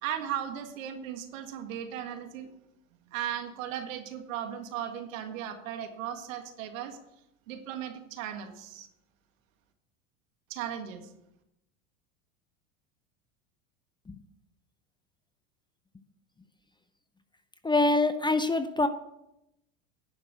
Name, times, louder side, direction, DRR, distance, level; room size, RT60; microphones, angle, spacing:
voice 1, 0.0-2.5 3.1-7.0 7.5-8.9 10.5-11.1, right 10 dB, 70° right, 6 dB, 1.9 m, -36 dB
voice 2, 17.6-18.9, left 2 dB, 10° left, 10 dB, 0.6 m, -25 dB
10.5 x 6.0 x 7.5 m, 0.84 s
hypercardioid pair, 90°, 41 cm